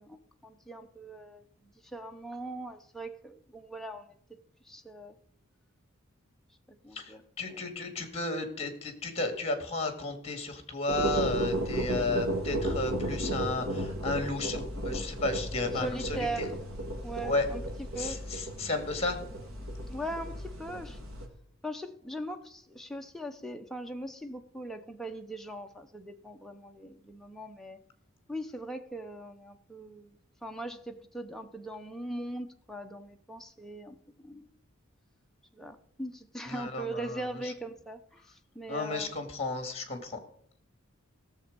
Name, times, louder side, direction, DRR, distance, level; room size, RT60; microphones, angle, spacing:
voice 1, 0.0-4.4 4.6-5.2 6.8-7.2 15.7-16.6 17.0-17.6 17.9-18.2 19.9-21.0 21.6-27.8 28.3-34.0 34.2-34.5 35.5-39.1, right 1 dB, ahead, 4 dB, 0.7 m, -40 dB
voice 2, 6.9-16.5 17.2-17.5 18.0-19.2 36.5-37.5 38.7-40.2, left 2 dB, 30° left, 7 dB, 2.0 m, -33 dB
sound 1, 10.9-21.3, right 1 dB, 70° right, 2.0 m, -34 dB
16.0 x 7.1 x 5.2 m, 0.64 s
head